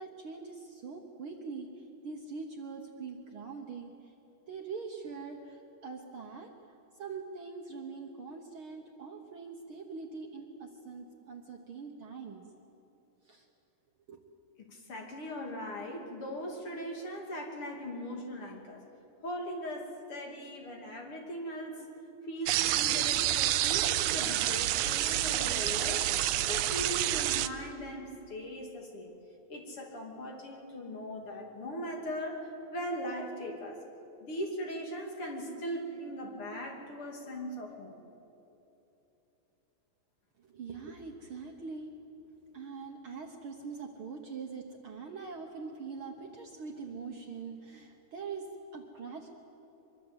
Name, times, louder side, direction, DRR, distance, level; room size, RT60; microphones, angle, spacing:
voice 1, 0.0-4.1 4.5-6.5 6.9-12.4 13.2-13.5 14.1-14.2 40.4-41.9 42.5-49.3, right 4 dB, 55° right, 2 dB, 1.8 m, -43 dB
voice 2, 14.6-18.8 19.2-21.9 22.2-29.1 29.5-33.8 34.2-38.0, equal, 45° left, 1 dB, 3.3 m, -39 dB
sound 1, 22.5-27.5, right 13 dB, 75° right, 1.6 m, -28 dB
24.0 x 23.0 x 8.2 m, 3.0 s
omnidirectional pair, 3.5 m